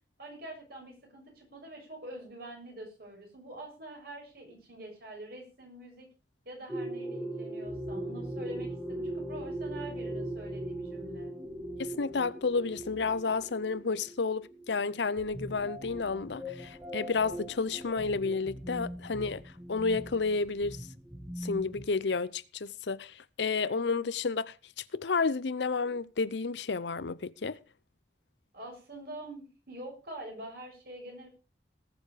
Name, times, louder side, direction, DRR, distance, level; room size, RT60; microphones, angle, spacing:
voice 1, 0.2-6.1 6.4-11.3 28.5-31.3, right 1 dB, 55° right, 6.9 m, -45 dB
sound 1, 6.7-21.8, right 1 dB, 10° right, 1.9 m, -40 dB
voice 2, 11.8-19.4 19.7-20.8 21.4-24.5 24.9-27.6, left 4 dB, 75° left, 0.7 m, -31 dB
19.0 x 7.2 x 5.0 m
head